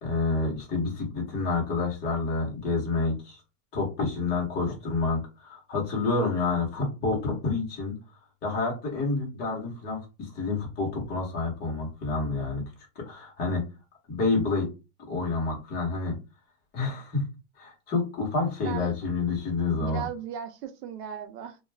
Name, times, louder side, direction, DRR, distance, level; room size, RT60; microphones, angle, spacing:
voice 1, 0.0-3.4 3.7-8.0 8.4-12.6 13.0-13.6 14.1-14.7 15.1-16.2 16.7-17.2 17.6-20.1, left 3 dB, 20° left, -1 dB, 1.0 m, -28 dB
voice 2, 18.6-19.0 19.8-21.6, right 9 dB, 85° right, 7 dB, 0.7 m, -37 dB
2.3 x 2.3 x 3.3 m, 0.29 s
supercardioid pair, 155°, 46 cm